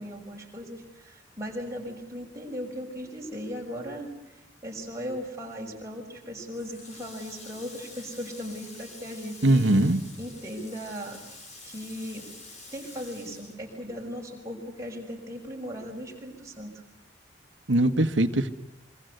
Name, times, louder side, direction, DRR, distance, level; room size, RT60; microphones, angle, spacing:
voice 1, 0.0-4.1 4.6-9.7 10.2-11.2 11.6-12.3 12.7-16.7, equal, 15° right, -1 dB, 6.1 m, -37 dB
Water tap faucet, 6.5-14.4 14.7-16.0, left 2 dB, 35° left, 5.7 m, -48 dB
voice 2, 9.4-10.0 17.7-18.5, right 1 dB, 75° right, 10 dB, 1.6 m, -21 dB
26.0 x 24.5 x 8.1 m, 0.89 s
head